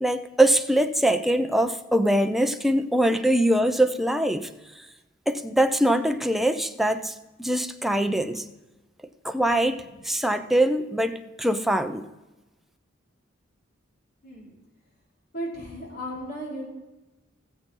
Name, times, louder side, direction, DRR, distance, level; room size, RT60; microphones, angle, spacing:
voice 1, 0.0-4.5 5.3-8.4 9.2-12.1, right 1 dB, ahead, 0.7 m, -23 dB
voice 2, 15.3-16.7, equal, 55° left, 5.0 m, -35 dB
19.0 x 7.7 x 3.8 m
head